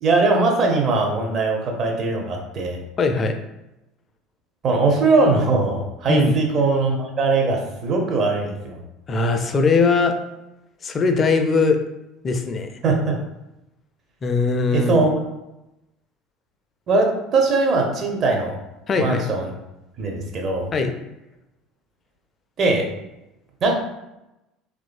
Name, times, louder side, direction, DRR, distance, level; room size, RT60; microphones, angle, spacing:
voice 1, 0.0-2.8 4.6-8.8 12.8-13.2 14.7-15.1 16.9-18.6 19.0-19.5 20.0-20.7 22.6-22.9 23.6-23.7, right 3 dB, 40° right, 1 dB, 0.6 m, -20 dB
voice 2, 3.0-3.3 6.1-6.3 9.1-10.1 10.8-11.8 12.2-12.7 14.2-15.1 18.9-19.3 20.7-20.9, left 4 dB, 35° left, 6 dB, 0.3 m, -20 dB
3.0 x 2.5 x 2.5 m, 0.94 s
figure-of-eight pair, 65°, 0 cm